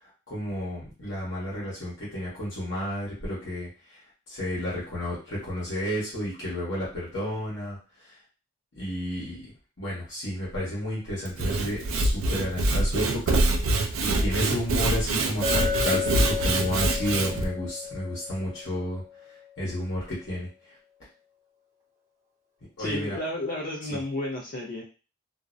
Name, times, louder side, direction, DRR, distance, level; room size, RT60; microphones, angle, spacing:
voice 1, 0.0-8.1 8.8-13.4 14.0-19.0 19.6-20.8 22.8-23.2 23.9-24.0, equal, 65° left, -7 dB, 1.0 m, -32 dB
Sawing / Wood, 11.2-17.5, right 2 dB, 90° right, 0.4 m, -25 dB
Chink clink, 15.4-19.4, left 6 dB, 15° right, 0.7 m, -33 dB
voice 2, 22.8-24.8, left 1 dB, 45° left, -2 dB, 0.4 m, -32 dB
2.4 x 2.0 x 2.5 m, 0.34 s
head